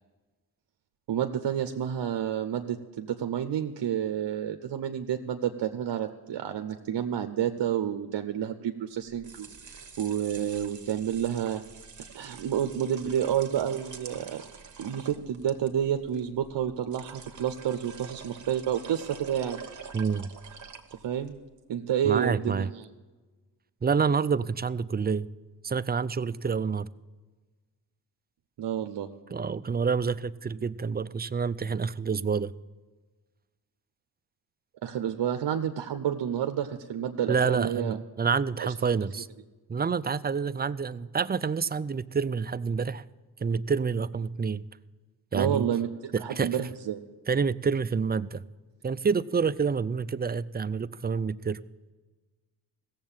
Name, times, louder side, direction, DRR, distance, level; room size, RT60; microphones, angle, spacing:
voice 1, 1.1-9.5 10.0-11.6 12.1-14.4 14.8-19.6 21.0-21.4 21.7-22.9 28.6-29.1 34.8-38.0 38.6-38.7 39.1-39.2 45.3-47.0, right 9 dB, 70° right, 8 dB, 0.8 m, -29 dB
sound 1, 9.1-21.4, right 6 dB, 45° right, 1.3 m, -47 dB
voice 2, 19.9-20.3 22.0-22.7 23.8-25.3 25.6-26.9 29.3-32.5 37.3-39.3 39.7-43.0 43.4-44.6 45.3-45.7 46.1-46.5 47.3-48.4 48.8-51.6, right 5 dB, 25° right, 15 dB, 0.4 m, -28 dB
16.0 x 7.4 x 7.2 m, 1.3 s
cardioid pair, 55°, 43 cm